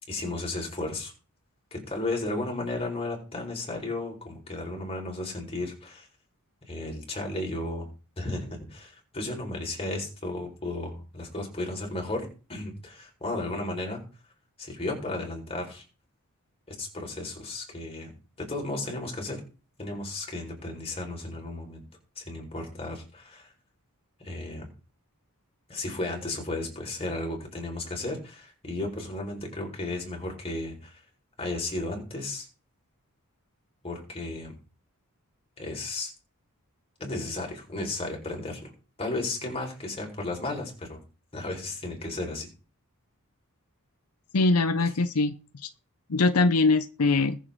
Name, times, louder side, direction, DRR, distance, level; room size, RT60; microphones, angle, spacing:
voice 1, 0.1-1.1 1.7-6.1 6.7-7.9 8.2-14.0 14.6-15.8 16.7-18.1 18.4-19.4 19.8-21.8 22.2-23.5 24.2-24.7 25.7-31.0 31.4-32.5 33.8-34.5 35.6-36.1 37.0-38.7 39.0-41.0 41.3-42.5 44.8-44.9, left 2 dB, 25° left, 4.5 m, -34 dB
voice 2, 44.3-45.3 45.6-45.7 46.1-47.4, left 3 dB, 85° left, 0.7 m, -22 dB
21.0 x 7.4 x 3.7 m
head